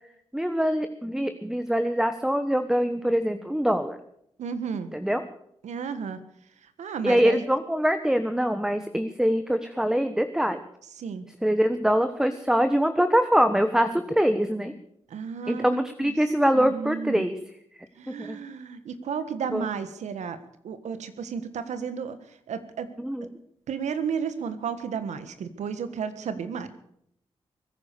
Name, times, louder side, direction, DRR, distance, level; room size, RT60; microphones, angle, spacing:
voice 1, 0.3-4.0 4.9-5.2 7.0-10.6 11.4-14.8 15.5-17.4 18.1-18.4 19.5-19.7 23.0-23.3, equal, 5° right, 9 dB, 1.2 m, -24 dB
voice 2, 4.4-4.9 5.6-6.2 6.8-7.4 11.0-11.2 15.1-16.1 16.5-17.2 18.0-20.4 20.6-22.2 22.5-22.9 23.7-26.7, right 6 dB, 85° right, 11 dB, 1.5 m, -33 dB
21.5 x 9.8 x 6.8 m, 0.72 s
cardioid pair, 55°, 12 cm